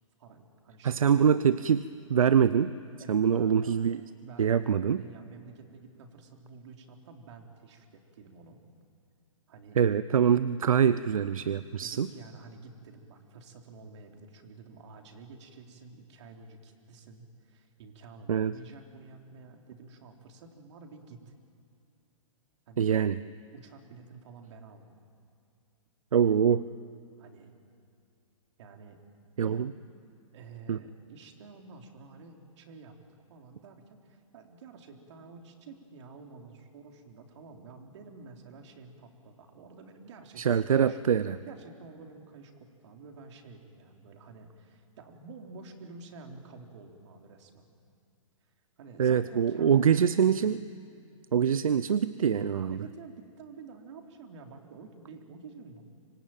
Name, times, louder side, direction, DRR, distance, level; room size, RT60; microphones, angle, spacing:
voice 1, 0.2-1.2 3.0-3.9 4.2-8.6 9.5-9.8 11.8-21.3 22.7-22.9 23.5-25.0 27.2-27.5 28.6-29.0 29.4-29.6 30.3-33.0 33.3-41.0 41.5-47.7 48.8-50.3 52.7-55.8, right 4 dB, 55° right, 3 dB, 3.7 m, -50 dB
voice 2, 0.8-1.8 2.1-2.7 3.1-4.0 4.4-5.0 9.8-12.1 18.3-18.5 22.8-23.2 26.1-26.6 29.4-29.7 30.7-30.8 40.4-41.4 49.0-50.6 51.3-52.8, right 8 dB, 80° right, 15 dB, 0.8 m, -24 dB
25.5 x 23.0 x 9.1 m, 2.5 s
hypercardioid pair, 130°, 17 cm